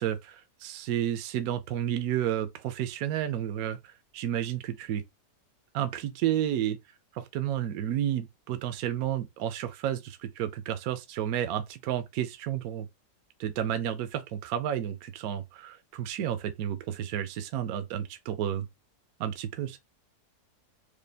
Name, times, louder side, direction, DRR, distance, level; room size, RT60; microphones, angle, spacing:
voice 1, 0.0-5.0 5.7-6.8 7.1-12.9 13.4-18.7 19.2-19.8, right 10 dB, 70° right, 0.9 m, -31 dB
5.0 x 2.2 x 3.3 m
omnidirectional pair, 1.8 m